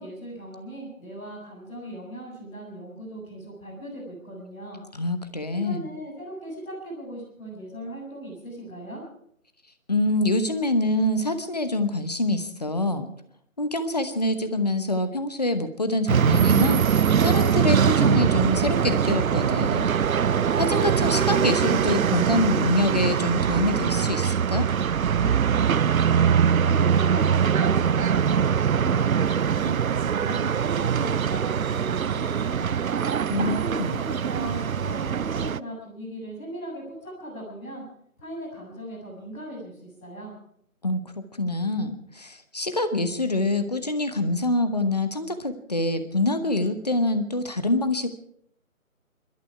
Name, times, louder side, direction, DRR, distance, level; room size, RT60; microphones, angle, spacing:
voice 1, 0.0-4.8 5.5-9.0 25.1-26.3 26.6-32.8 33.4-37.8 38.2-40.3, right 1 dB, ahead, -12 dB, 1.1 m, -38 dB
voice 2, 4.9-5.9 9.9-13.1 13.6-19.9 20.6-24.7 33.3-34.0 40.8-48.1, left 2 dB, 30° left, 9 dB, 1.0 m, -25 dB
sound 1, 16.1-35.6, right 7 dB, 70° right, 0.5 m, -22 dB
23.0 x 12.5 x 4.7 m, 0.69 s
figure-of-eight pair, 160°, 43 cm